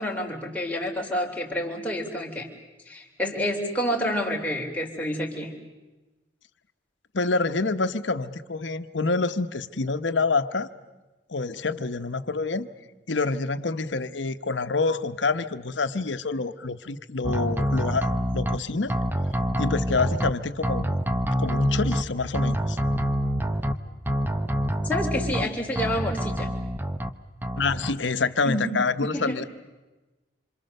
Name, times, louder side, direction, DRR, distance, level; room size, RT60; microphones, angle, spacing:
voice 1, 0.0-2.5 2.9-5.5 24.8-26.5 28.4-29.4, equal, 10° left, -1 dB, 3.5 m, -29 dB
voice 2, 7.1-10.7 11.3-12.7 13.1-19.0 19.6-22.8 27.6-29.4, left 3 dB, 80° left, 10 dB, 1.1 m, -27 dB
sound 1, 17.2-18.6 18.9-20.3 20.6-22.0 22.3-23.7 24.1-25.4 25.8-27.1 27.4-27.9, equal, 10° right, 1.0 m, -26 dB
27.0 x 26.5 x 6.6 m, 1.1 s
head